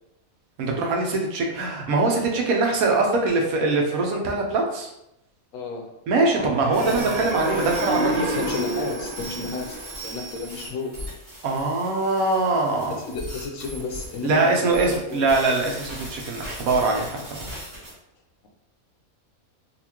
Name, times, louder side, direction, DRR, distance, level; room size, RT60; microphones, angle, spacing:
voice 1, 0.6-4.9 6.1-8.2 11.4-13.0 14.2-17.4, right 3 dB, 90° right, 1 dB, 1.2 m, -22 dB
voice 2, 5.5-6.0 7.9-11.0 13.0-15.2, left 4 dB, 75° left, 3 dB, 1.0 m, -32 dB
sound 1, 6.2-10.4, right 2 dB, 65° right, 1.7 m, -29 dB
sound 2, 6.7-17.9, right 1 dB, 45° right, 1.8 m, -38 dB
4.1 x 2.5 x 2.8 m, 0.84 s
omnidirectional pair, 1.5 m